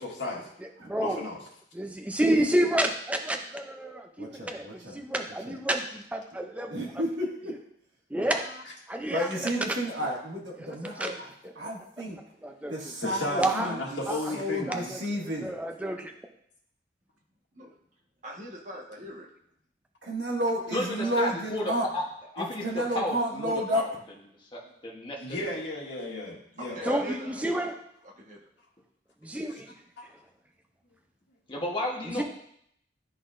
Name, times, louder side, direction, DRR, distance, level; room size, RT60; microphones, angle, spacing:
voice 1, 0.0-0.5 1.0-1.4 8.2-8.3 13.0-14.9 25.2-26.9 30.0-30.1, left 2 dB, 85° left, -2 dB, 1.6 m, -34 dB
voice 2, 0.6-1.2 1.7-6.7 7.5-7.6 8.1-8.4 8.9-9.8 10.6-11.2 11.4-11.5 12.4-12.9 13.4-13.7 14.1-14.2 14.7-16.1 26.8-27.8 29.2-29.7 32.0-32.2, right 1 dB, 10° right, 4 dB, 0.4 m, -30 dB
voice 3, 4.2-4.9 6.7-7.5 9.1-11.1 11.6-12.2 12.7-13.4 13.6-13.8 14.3-15.5 20.0-21.8 22.4-23.8, equal, 75° right, -3 dB, 1.8 m, -31 dB
voice 4, 18.2-19.3 26.6-27.7 28.2-28.4, right 1 dB, 45° right, -2 dB, 1.3 m, -42 dB
voice 5, 20.7-22.0 22.3-24.0 24.5-25.4 31.5-32.2, left 1 dB, 25° left, -3 dB, 1.0 m, -33 dB
12.0 x 4.0 x 2.5 m, 0.70 s
head